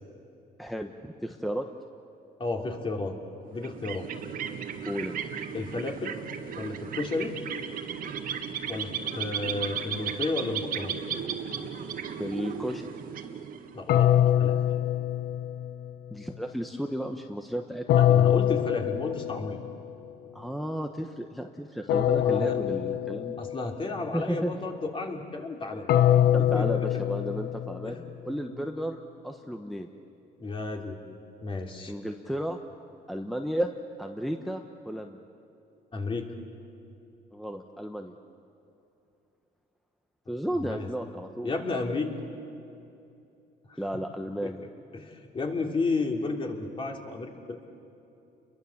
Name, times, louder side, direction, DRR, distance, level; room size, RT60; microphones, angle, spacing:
voice 1, 0.6-1.7 4.8-5.2 12.2-12.8 16.1-17.9 20.3-23.4 24.1-24.5 26.3-28.0 28.2-29.9 31.9-32.6 33.1-33.7 34.0-35.2 37.3-38.1 40.3-41.5 43.8-44.6, equal, ahead, 4 dB, 1.1 m, -33 dB
voice 2, 2.4-3.2 3.4-4.1 5.5-6.2 6.5-7.4 8.7-10.9 13.7-14.6 18.0-19.6 22.2-22.6 23.4-25.9 26.4-26.7 27.8-28.0 30.4-31.1 31.4-31.9 35.9-36.4 40.6-40.9 41.4-42.1 43.7-43.8 44.4-44.5 44.9-47.6, left 3 dB, 30° left, 2 dB, 3.2 m, -32 dB
sound 1, 3.5-13.9, right 7 dB, 55° right, 1.8 m, -35 dB
sound 2, 13.9-15.9 17.9-19.7 21.9-23.7 25.9-28.1, left 11 dB, 70° left, 0.7 m, -24 dB
30.0 x 22.5 x 7.3 m, 2.8 s
cardioid pair, 110°, 17 cm